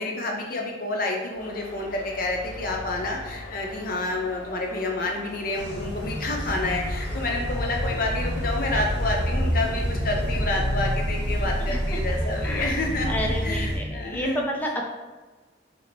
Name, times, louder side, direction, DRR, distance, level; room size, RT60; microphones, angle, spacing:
voice 1, 0.0-14.4, left 2 dB, 50° left, 1 dB, 0.6 m, -29 dB
sound 1, 1.3-14.3, left 1 dB, 30° right, 1.2 m, -43 dB
sound 2, 1.4-9.2, left 2 dB, 85° left, 0.8 m, -45 dB
sound 3, 5.5-13.8, equal, 70° right, 1.0 m, -28 dB
voice 2, 12.2-12.8 13.1-14.8, equal, 10° left, -1 dB, 0.3 m, -30 dB
4.8 x 2.1 x 3.3 m, 1.2 s
head